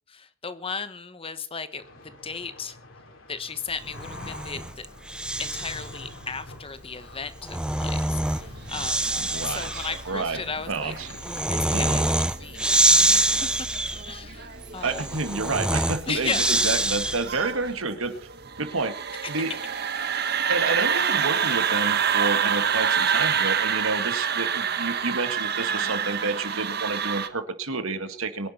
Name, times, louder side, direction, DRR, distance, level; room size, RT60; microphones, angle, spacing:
voice 1, 0.1-2.8 3.3-4.9 5.4-10.9 11.5-13.7 14.0-15.1 16.1-16.5, left 5 dB, 25° left, 12 dB, 1.2 m, -35 dB
sound 1, 1.8-12.2, left 2 dB, 65° left, 4.2 m, -45 dB
Breathing, 4.0-5.9 7.2-17.5, right 1 dB, 5° right, 0.6 m, -26 dB
sound 2, 8.4-27.3, right 7 dB, 50° right, 1.4 m, -28 dB
voice 2, 9.3-10.4 10.7-11.1 11.7-12.1 14.8-18.1 18.6-19.0 19.3-19.5 20.5-28.5, right 3 dB, 75° right, 9 dB, 2.0 m, -29 dB
23.5 x 11.0 x 4.3 m, 0.43 s
head